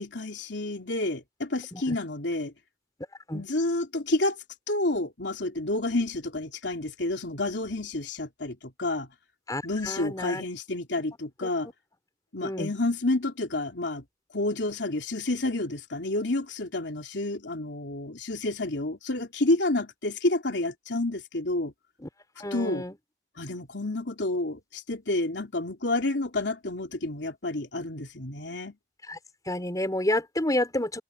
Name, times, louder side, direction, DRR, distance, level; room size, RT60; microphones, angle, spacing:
voice 1, 0.0-2.5 3.3-4.4 4.7-9.1 9.6-11.7 12.3-14.0 14.3-21.7 22.5-22.8 23.4-28.7, left 2 dB, 80° left, 3.2 m, -29 dB
voice 2, 9.5-10.4 12.4-12.7 22.0-22.1 22.4-22.9 29.1-29.2 29.4-31.0, left 1 dB, 20° left, 5.0 m, -29 dB
head